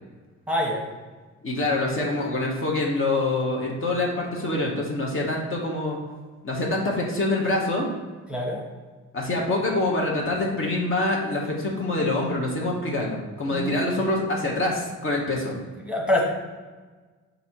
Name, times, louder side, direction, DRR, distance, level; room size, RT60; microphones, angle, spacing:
voice 1, 0.5-0.8 8.3-8.6 13.5-13.9 15.8-16.2, left 1 dB, 5° right, -2 dB, 1.1 m, -25 dB
voice 2, 1.4-6.0 6.4-7.9 9.1-15.5, left 2 dB, 45° left, -2 dB, 1.0 m, -25 dB
4.3 x 2.7 x 4.4 m, 1.4 s
cardioid pair, 90°, 30 cm